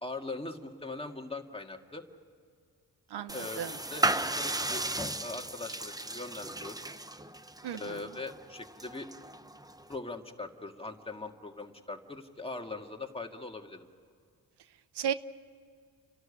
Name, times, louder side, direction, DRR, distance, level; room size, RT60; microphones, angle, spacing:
voice 1, 0.0-2.0 3.3-6.8 7.7-9.1 9.9-13.9, left 3 dB, 15° left, 3 dB, 2.0 m, -41 dB
voice 2, 3.1-3.7 7.6-8.0 15.0-15.1, right 9 dB, 80° right, 14 dB, 0.8 m, -34 dB
sound 1, 3.3-9.9, right 2 dB, 10° right, 0.8 m, -35 dB
30.0 x 12.5 x 9.9 m, 2.2 s
cardioid pair, 75°, 39 cm